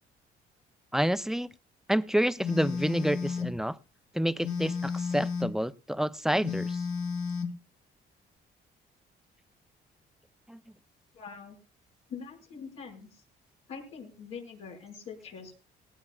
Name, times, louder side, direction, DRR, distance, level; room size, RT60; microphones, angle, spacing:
voice 1, 0.9-1.5 1.9-3.8 4.1-6.8 10.5-10.6, equal, ahead, 0.6 m, -28 dB
Telephone, 2.4-3.6 4.4-5.6 6.4-7.6, left 5 dB, 70° left, 2.1 m, -32 dB
voice 2, 11.1-11.6 12.1-13.2 13.7-15.6, left 6 dB, 90° left, 5.5 m, -44 dB
18.5 x 17.5 x 2.4 m
cardioid pair, 90°, 20 cm